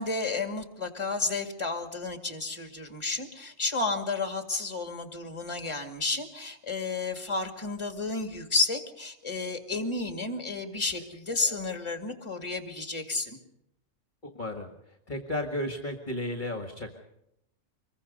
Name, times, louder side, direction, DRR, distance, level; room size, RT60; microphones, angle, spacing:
voice 1, 0.0-13.4, left 3 dB, 25° left, 6 dB, 2.3 m, -31 dB
voice 2, 14.2-14.7 15.1-17.0, left 1 dB, 40° left, 4 dB, 1.9 m, -34 dB
25.5 x 22.0 x 5.5 m, 0.81 s
omnidirectional pair, 1.3 m